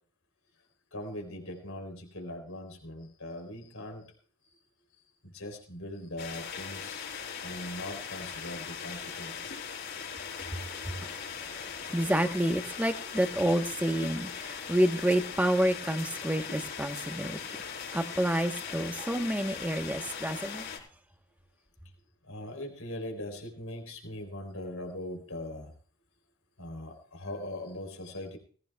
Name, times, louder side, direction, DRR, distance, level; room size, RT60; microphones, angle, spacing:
voice 1, 0.9-4.1 5.2-7.1 7.4-9.6 22.2-25.7 26.6-28.4, left 1 dB, 85° left, 4 dB, 3.3 m, -40 dB
sound 1, 6.2-20.8, left 6 dB, 50° left, 4.5 m, -40 dB
voice 2, 10.5-11.2 11.6-17.4 17.9-20.7, right 1 dB, 5° right, 6 dB, 1.0 m, -29 dB
19.5 x 15.5 x 2.3 m, 0.43 s
head